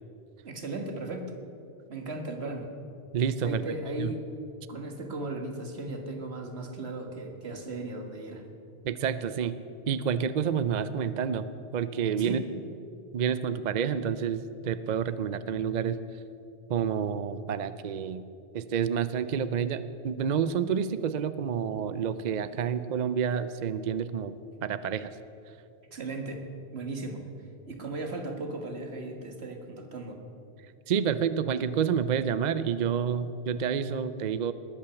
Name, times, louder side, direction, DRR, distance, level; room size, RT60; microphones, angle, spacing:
voice 1, 0.4-1.3 1.9-2.7 3.4-4.3 4.7-8.5 12.2-12.4 25.9-26.5 26.7-27.2 27.7-30.2, right 2 dB, 70° right, 4 dB, 1.9 m, -36 dB
voice 2, 3.1-3.7 4.0-4.1 8.8-9.5 9.9-12.4 13.1-16.0 16.7-18.2 18.5-24.3 24.6-25.1 30.9-34.5, right 7 dB, 55° right, 13 dB, 0.5 m, -29 dB
20.0 x 8.7 x 7.0 m, 2.7 s
omnidirectional pair, 1.1 m